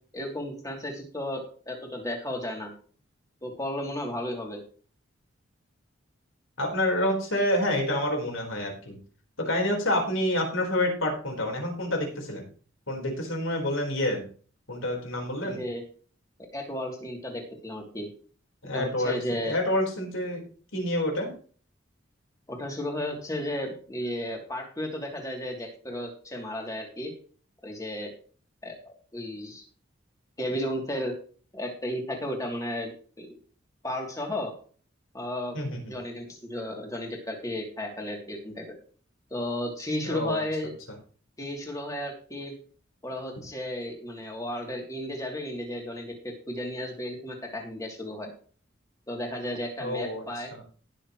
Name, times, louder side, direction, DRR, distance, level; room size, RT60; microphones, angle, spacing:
voice 1, 0.1-2.7 3.4-4.6 15.4-15.8 16.5-18.1 18.7-19.5 22.5-27.1 27.6-28.1 28.6-29.6 30.4-31.1 31.5-33.4 33.8-34.5 35.1-35.6 35.9-38.8 39.3-40.7 41.4-42.5 43.0-48.3 49.1-50.5, left 1 dB, 15° left, 1 dB, 3.0 m, -34 dB
voice 2, 6.6-9.0 9.4-12.5 12.9-14.3 14.7-15.6 18.6-19.2 19.4-20.4 20.7-21.3 35.5-36.0 40.0-40.4 49.8-50.2 50.5-50.6, left 1 dB, 85° left, 1 dB, 4.5 m, -28 dB
19.0 x 7.1 x 3.2 m, 0.42 s
head